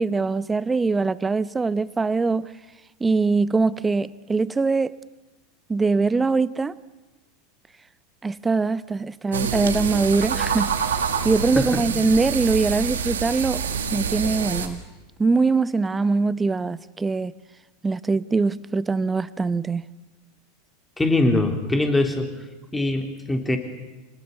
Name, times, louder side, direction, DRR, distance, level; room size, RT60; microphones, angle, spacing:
voice 1, 0.0-2.5 3.0-4.9 5.7-6.7 8.2-10.9 11.2-14.8 15.2-17.3 17.8-19.9, right 4 dB, 15° right, 0.8 m, -22 dB
sound 1, 9.3-14.7, right 7 dB, 85° right, 2.0 m, -26 dB
voice 2, 21.0-22.3 22.7-23.6, left 2 dB, 10° left, 3.4 m, -22 dB
26.0 x 19.5 x 6.8 m
hypercardioid pair, 90°, 0 cm